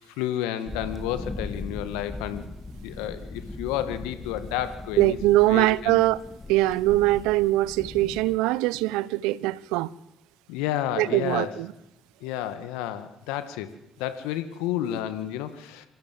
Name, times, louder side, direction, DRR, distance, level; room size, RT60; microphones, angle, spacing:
voice 1, 0.1-2.4 2.8-5.2 5.5-6.0 10.5-11.5 12.2-13.7 14.0-15.9, left 11 dB, 80° left, 2.0 m, -31 dB
sound 1, 0.7-8.4, left 2 dB, 20° left, 3.5 m, -39 dB
voice 2, 5.0-6.2 6.5-9.9 11.0-11.7, right 17 dB, 75° right, 0.9 m, -22 dB
28.0 x 25.5 x 7.7 m
hypercardioid pair, 50°, 0 cm